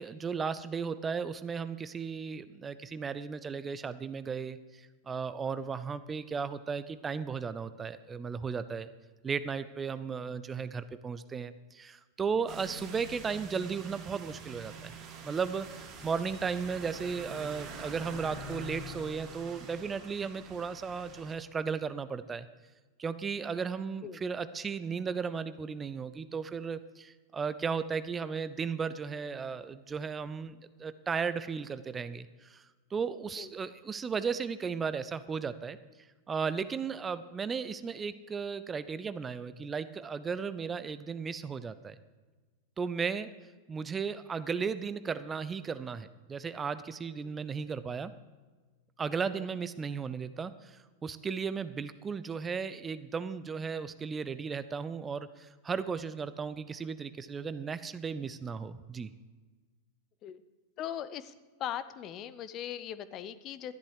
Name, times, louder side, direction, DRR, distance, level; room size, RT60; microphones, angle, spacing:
voice 1, 0.0-8.9 9.2-14.9 15.2-22.5 23.0-35.8 36.3-42.0 42.8-43.3 43.7-48.1 49.0-59.1, right 5 dB, 20° right, 14 dB, 0.5 m, -35 dB
sound 1, 12.5-21.3, right 2 dB, 35° right, 2.8 m, -45 dB
voice 2, 60.8-61.3 61.6-63.7, left 10 dB, 35° left, 15 dB, 0.7 m, -39 dB
13.0 x 11.5 x 4.8 m, 1.3 s
figure-of-eight pair, 90°, 0 cm